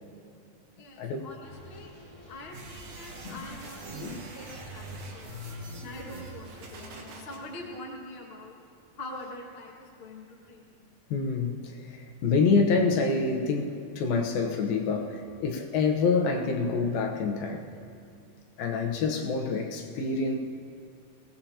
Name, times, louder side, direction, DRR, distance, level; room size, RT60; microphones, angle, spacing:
voice 1, 0.8-1.9 2.3-5.4 5.7-8.5 8.9-11.0, left 1 dB, 40° left, -2 dB, 0.8 m, -44 dB
sound 1, 1.4-7.6, left 1 dB, 10° left, 3.1 m, -46 dB
sound 2, 2.5-7.4, right 3 dB, 55° right, 2.6 m, -45 dB
voice 2, 4.0-4.3 11.1-17.7 18.6-20.4, left 4 dB, 75° left, 2 dB, 2.7 m, -27 dB
22.0 x 18.0 x 2.9 m, 2.4 s
omnidirectional pair, 4.4 m